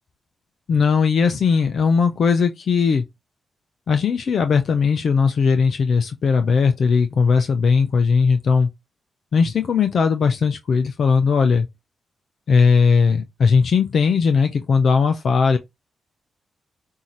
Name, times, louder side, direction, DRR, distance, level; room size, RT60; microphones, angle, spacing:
voice 1, 0.7-3.0 3.9-8.7 9.3-11.7 12.5-15.6, left 5 dB, 65° left, 0.6 m, -18 dB
5.5 x 2.7 x 3.1 m
supercardioid pair, 50°, 0 cm